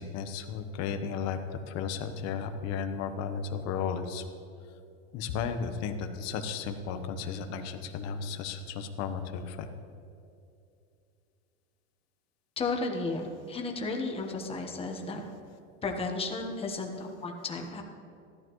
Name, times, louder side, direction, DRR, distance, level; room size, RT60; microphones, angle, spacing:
voice 1, 0.0-4.2 5.1-9.7, left 6 dB, 45° left, 8 dB, 1.0 m, -34 dB
voice 2, 12.6-15.2 15.8-17.8, left 3 dB, 15° left, 2 dB, 1.2 m, -33 dB
14.0 x 12.0 x 3.1 m, 2.5 s
supercardioid pair, 140°, 36 cm